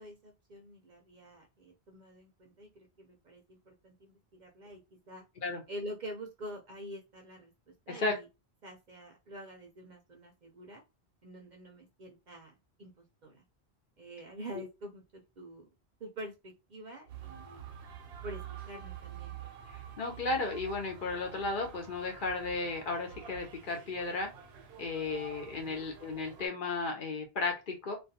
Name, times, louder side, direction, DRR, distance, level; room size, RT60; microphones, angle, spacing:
voice 1, 0.0-5.3 5.7-7.5 7.9-8.3 8.6-10.8 11.2-12.5 12.8-13.5 14.0-15.7 16.0-17.7 18.2-19.4 25.6-25.9, right 1 dB, 55° right, 2 dB, 0.6 m, -47 dB
sound 1, 17.1-26.5, right 9 dB, 85° right, 0.8 m, -48 dB
voice 2, 19.7-24.3 24.8-28.0, left 3 dB, 55° left, 2 dB, 0.9 m, -34 dB
2.4 x 2.2 x 2.8 m, 0.26 s
omnidirectional pair, 1.1 m